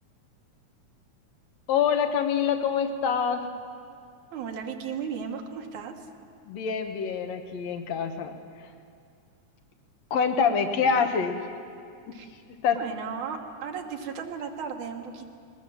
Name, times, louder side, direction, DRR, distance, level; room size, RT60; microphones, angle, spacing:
voice 1, 1.7-3.4 6.5-8.3 10.1-11.4 12.6-12.8, left 6 dB, 65° left, 7 dB, 2.4 m, -25 dB
voice 2, 4.3-6.1 10.7-11.1 12.1-12.3 12.8-15.3, right 6 dB, 80° right, 3 dB, 2.8 m, -36 dB
21.5 x 20.0 x 7.3 m, 2.3 s
omnidirectional pair, 3.4 m